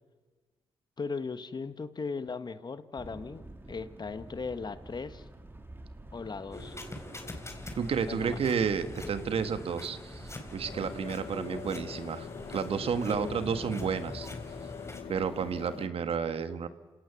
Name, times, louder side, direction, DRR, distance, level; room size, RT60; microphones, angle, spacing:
voice 1, 1.0-3.4 3.7-5.3 6.1-6.8 8.1-8.4 13.1-13.4, left 4 dB, 40° left, 13 dB, 1.3 m, -37 dB
sound 1, 3.0-15.6, right 1 dB, 20° right, 2.0 m, -49 dB
sound 2, 6.5-15.0, left 2 dB, 25° left, 4.2 m, -43 dB
voice 2, 7.7-12.3 12.5-14.3 15.1-16.7, right 6 dB, 65° right, 11 dB, 1.5 m, -31 dB
sound 3, 10.7-15.9, left 7 dB, 65° left, 1.1 m, -44 dB
27.0 x 17.5 x 7.1 m, 1.3 s
supercardioid pair, 50°, 11 cm